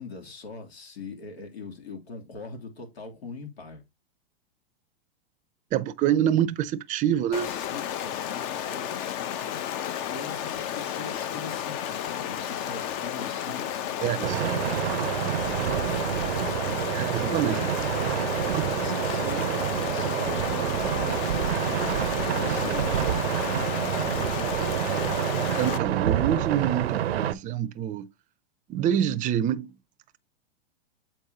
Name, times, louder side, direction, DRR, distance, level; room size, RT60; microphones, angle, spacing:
voice 1, 0.0-3.8 7.3-9.1 10.1-14.9 15.4-16.9 17.4-18.1 18.8-19.5 19.7-24.4, left 4 dB, 90° left, 3.0 m, -42 dB
voice 2, 5.7-7.5 14.0-14.4 16.9-17.7 18.4-18.9 25.6-28.1 28.7-29.8, right 10 dB, 25° right, 0.6 m, -26 dB
Stream, 7.3-25.8, left 10 dB, 40° left, 0.8 m, -32 dB
sound 1, 14.2-27.3, right 11 dB, 85° right, 0.6 m, -28 dB
8.0 x 4.5 x 2.8 m
hypercardioid pair, 125°, 31 cm